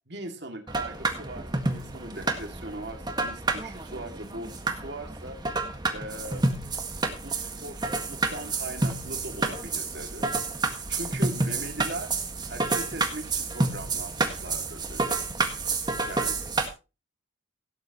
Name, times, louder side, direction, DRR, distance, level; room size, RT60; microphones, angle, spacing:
voice 1, 0.1-5.4 5.9-6.5 7.2-10.6 10.9-15.0 16.1-16.4, right 1 dB, 55° right, 5 dB, 2.5 m, -40 dB
sound 1, 0.7-16.7, right 3 dB, 20° right, 1.7 m, -29 dB
17.0 x 10.0 x 3.1 m, 0.29 s
head